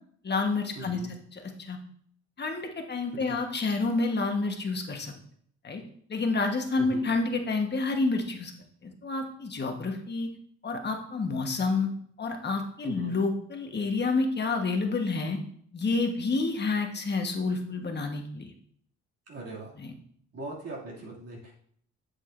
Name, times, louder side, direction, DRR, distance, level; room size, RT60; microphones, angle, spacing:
voice 1, 0.2-1.0 1.3-1.8 2.4-5.1 5.6-5.8 6.1-8.5 8.8-10.3 10.6-11.9 12.2-15.4 15.7-18.5 19.8-19.9, left 3 dB, 35° left, 4 dB, 1.3 m, -29 dB
voice 2, 0.7-1.1 3.3-3.4 6.8-7.1 12.8-13.1 19.3-19.7 20.3-21.5, right 2 dB, 55° right, -5 dB, 2.5 m, -40 dB
7.9 x 7.2 x 2.6 m, 0.63 s
cardioid pair, 90°, 30 cm